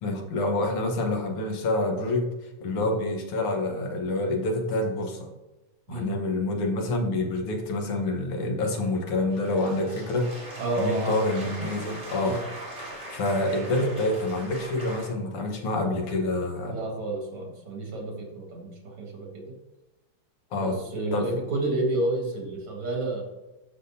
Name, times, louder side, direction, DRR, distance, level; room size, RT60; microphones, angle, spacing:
voice 1, 0.0-2.3 2.6-5.3 5.9-12.4 13.1-16.8 20.5-20.8 21.1-21.3, left 2 dB, 85° left, 2 dB, 2.2 m, -27 dB
sound 1, 9.3-15.1, right 1 dB, 20° right, 3.2 m, -40 dB
voice 2, 10.6-11.4 12.2-12.5 16.7-19.5 20.6-23.2, right 2 dB, 80° right, -1 dB, 2.9 m, -30 dB
12.0 x 5.8 x 2.8 m, 1.0 s
omnidirectional pair, 2.4 m